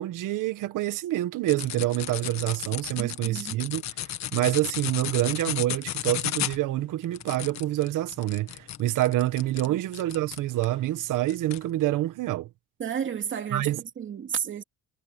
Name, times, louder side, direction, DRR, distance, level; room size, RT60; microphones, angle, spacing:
voice 1, 0.0-3.8 4.3-12.5 13.5-13.8, right 15 dB, 80° right, 1.6 m, -27 dB
sound 1, 1.5-10.8 11.3-11.6, left 12 dB, 60° left, 1.6 m, -34 dB
voice 2, 3.0-3.6 9.6-9.8 12.8-14.6, right 8 dB, 40° right, 2.6 m, -32 dB
cardioid pair, 165°, 31 cm